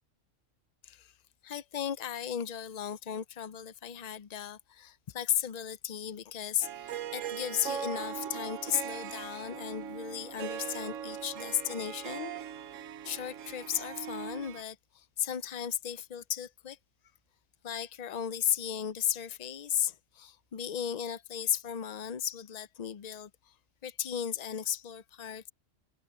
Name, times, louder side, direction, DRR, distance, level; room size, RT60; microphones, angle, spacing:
voice 1, 1.4-12.3 13.0-16.8 17.6-23.5 23.8-25.5, left 9 dB, 45° left, 0.5 m, -35 dB
Harp, 6.6-14.6, right 9 dB, 80° right, 1.2 m, -40 dB
omnidirectional pair, 1.3 m